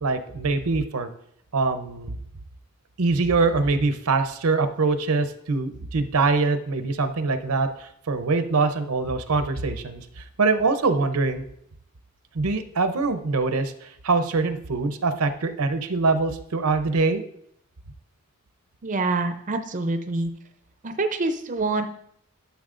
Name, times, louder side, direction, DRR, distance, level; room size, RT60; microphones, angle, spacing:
voice 1, 0.0-1.1 1.5-2.2 3.0-10.0 10.4-11.4 12.3-17.2, right 3 dB, 75° right, 9 dB, 0.7 m, -23 dB
voice 2, 18.8-20.3 20.8-21.9, right 3 dB, 35° right, 8 dB, 0.5 m, -26 dB
12.5 x 7.1 x 2.5 m, 0.70 s
head